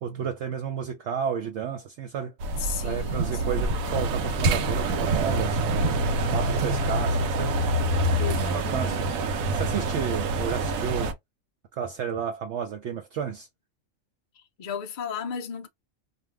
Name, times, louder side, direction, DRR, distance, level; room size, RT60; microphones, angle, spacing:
voice 1, 0.0-2.3 2.8-6.0 6.3-7.6 8.3-9.1 9.5-11.1 11.8-13.5, right 7 dB, 65° right, 0.8 m, -32 dB
sound 1, 2.4-11.1, right 2 dB, 90° right, 1.1 m, -26 dB
voice 2, 2.6-3.8 8.2-9.1 14.4-15.7, left 6 dB, 80° left, 0.4 m, -35 dB
2.6 x 2.3 x 3.2 m
omnidirectional pair, 1.4 m